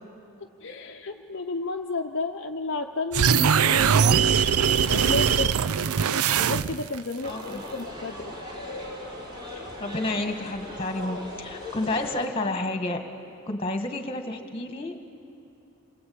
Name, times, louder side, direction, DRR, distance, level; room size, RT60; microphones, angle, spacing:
voice 1, 0.6-5.5 6.4-8.3, left 3 dB, 55° left, 2 dB, 0.8 m, -32 dB
sound 1, 3.1-7.0, right 7 dB, 80° right, 0.5 m, -21 dB
sound 2, 7.2-12.3, left 1 dB, 20° right, 4.2 m, -38 dB
voice 2, 7.3-7.6 9.5-13.0 13.4-15.1, left 2 dB, 25° left, 6 dB, 1.7 m, -30 dB
28.5 x 21.5 x 8.7 m, 2.6 s
head